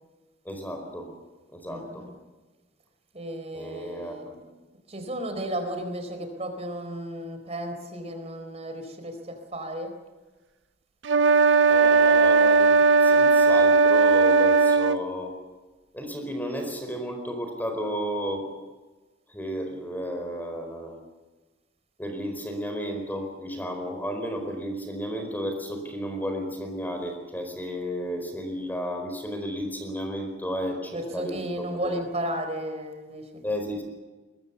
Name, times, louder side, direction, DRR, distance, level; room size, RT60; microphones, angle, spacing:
voice 1, 0.4-1.1 1.5-2.1 3.5-4.4 11.6-15.4 15.9-18.5 19.3-21.0 22.0-31.4 31.8-31.9 33.4-33.9, equal, 10° left, 5 dB, 4.5 m, -33 dB
voice 2, 1.7-2.1 3.1-4.3 4.9-10.0 30.9-33.4, right 1 dB, 35° right, 6 dB, 4.1 m, -34 dB
sound 1, 11.0-15.0, right 4 dB, 80° right, 0.6 m, -18 dB
22.0 x 21.5 x 6.9 m, 1.2 s
head